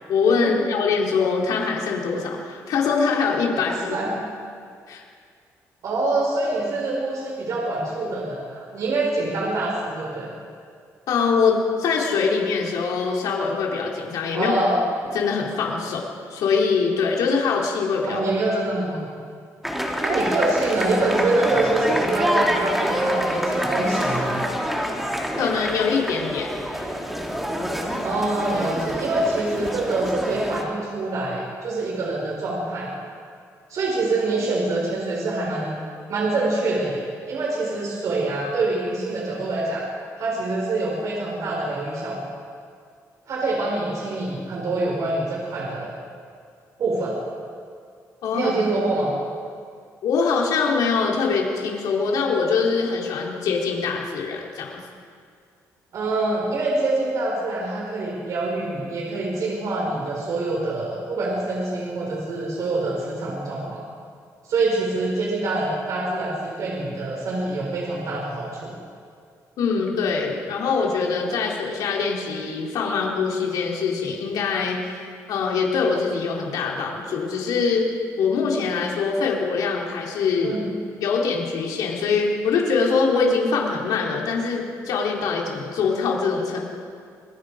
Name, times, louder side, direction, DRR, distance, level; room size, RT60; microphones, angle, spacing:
voice 1, 0.1-4.0 4.9-5.0 11.1-14.5 15.1-18.2 25.4-26.6 48.2-48.5 50.0-54.8 69.6-75.0 75.3-77.9 78.2-80.5 81.0-86.6, left 5 dB, 80° left, -2 dB, 4.0 m, -23 dB
voice 2, 5.8-10.3 14.3-14.8 18.0-19.1 20.0-24.5 28.0-32.9 33.7-35.8 36.1-37.0 37.3-39.9 40.2-42.2 43.3-45.9 46.8-47.2 48.3-49.1 55.9-63.8 64.4-68.8 80.4-80.6, right 2 dB, 60° right, -3 dB, 5.7 m, -25 dB
sound 1, 19.6-30.6, equal, 5° right, 2.7 m, -26 dB
27.0 x 21.5 x 5.2 m, 2.2 s
cardioid pair, 130°, 6 cm